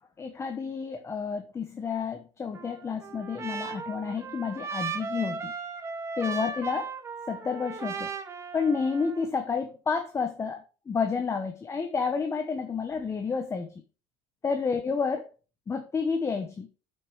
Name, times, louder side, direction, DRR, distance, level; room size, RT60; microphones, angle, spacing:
voice 1, 0.2-5.5 6.2-6.9 7.3-8.1 8.5-13.7 14.4-15.2 15.7-16.7, left 5 dB, 20° left, 7 dB, 1.0 m, -30 dB
Trumpet, 2.5-9.3, right 5 dB, 20° right, 1.5 m, -37 dB
8.0 x 6.0 x 5.0 m, 0.34 s
supercardioid pair, 130°, 14 cm